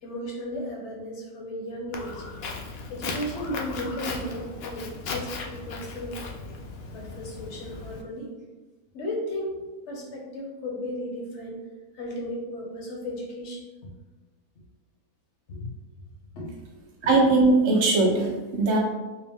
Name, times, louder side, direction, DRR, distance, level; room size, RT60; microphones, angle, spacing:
voice 1, 0.0-2.2 2.9-6.3 6.9-8.3 8.9-11.6 11.9-13.6 15.5-15.7 16.3-16.5 17.0-17.3, left 1 dB, 55° left, -1 dB, 1.0 m, -35 dB
Walk footsteps, 1.9-8.0, left 3 dB, 75° left, 0.5 m, -37 dB
voice 2, 17.0-18.8, right 2 dB, 65° right, -1 dB, 1.1 m, -20 dB
4.6 x 2.0 x 3.5 m, 1.2 s
omnidirectional pair, 1.6 m